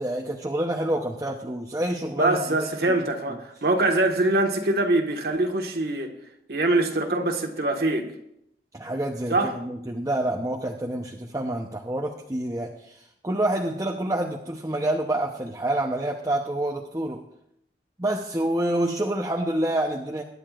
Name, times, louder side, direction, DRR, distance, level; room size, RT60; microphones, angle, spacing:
voice 1, 0.0-2.4 2.9-3.0 8.7-17.2 18.0-20.2, right 1 dB, 20° right, 0.8 m, -27 dB
voice 2, 2.2-6.1 6.5-8.1 9.3-9.5, right 2 dB, 60° right, 1.6 m, -23 dB
22.0 x 10.5 x 2.5 m
head